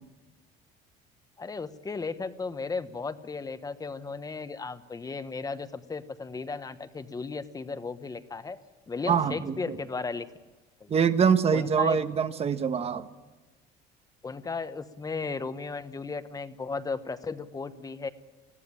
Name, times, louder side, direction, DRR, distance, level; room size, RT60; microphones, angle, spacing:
voice 1, 1.4-8.6 8.9-10.3 10.8-11.1 11.5-12.0 14.2-18.1, left 4 dB, 20° left, 11 dB, 1.1 m, -35 dB
voice 2, 9.1-9.8 10.9-13.1, right 7 dB, 35° right, 10 dB, 1.3 m, -24 dB
21.0 x 15.0 x 8.8 m, 1.2 s
cardioid pair, 125°, 19 cm